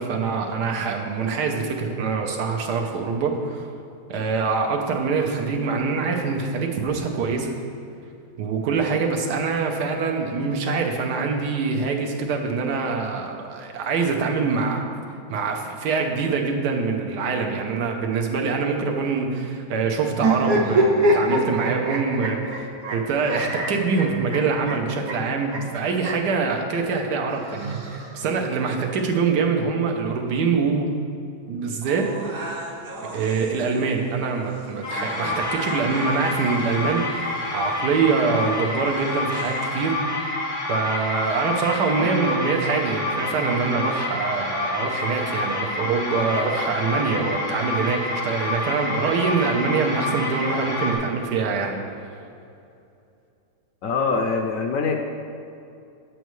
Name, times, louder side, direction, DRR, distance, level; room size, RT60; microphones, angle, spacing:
voice 1, 0.0-3.7 4.1-7.5 8.4-14.8 15.3-30.9 31.5-32.1 33.1-40.3 40.7-51.8, right 4 dB, 85° right, 2 dB, 1.4 m, -24 dB
sound 1, 20.1-26.3 27.3-28.4, right 1 dB, 65° right, 1.2 m, -24 dB
sound 2, 31.8-39.8, right 2 dB, 50° right, 0.7 m, -39 dB
sound 3, 34.8-50.9, left 2 dB, 85° left, 2.2 m, -28 dB
voice 2, 53.8-55.0, left 4 dB, 70° left, 3 dB, 0.8 m, -24 dB
8.1 x 7.8 x 3.1 m, 2.6 s
omnidirectional pair, 1.7 m